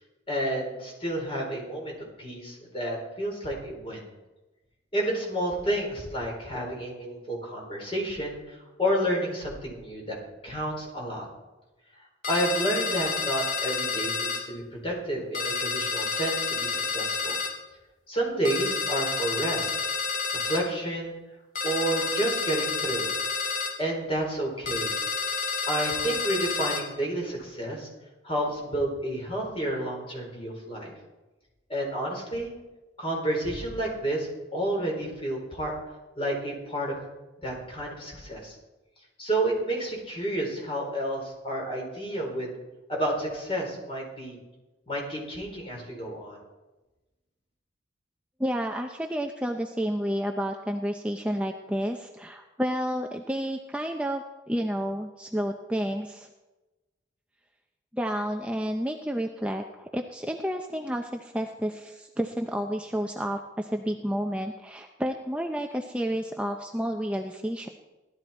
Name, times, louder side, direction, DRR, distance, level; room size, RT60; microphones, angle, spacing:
voice 1, 0.3-4.0 4.9-10.2 10.4-11.3 12.3-17.4 18.1-19.7 20.3-21.2 21.6-23.1 23.8-24.9 25.7-27.9 28.2-30.9 31.7-32.5 33.0-35.7 36.2-37.0 37.4-38.5 39.2-42.6 42.9-44.4 44.9-46.4, right 1 dB, 30° left, -1 dB, 4.4 m, -30 dB
sound 1, 12.2-14.4 15.3-17.5 18.4-20.6 21.6-23.7 24.7-26.8, left 4 dB, 45° left, 2.7 m, -29 dB
voice 2, 48.4-56.3 57.9-67.7, equal, 5° right, 3 dB, 0.6 m, -30 dB
17.0 x 12.5 x 4.4 m, 1.1 s
head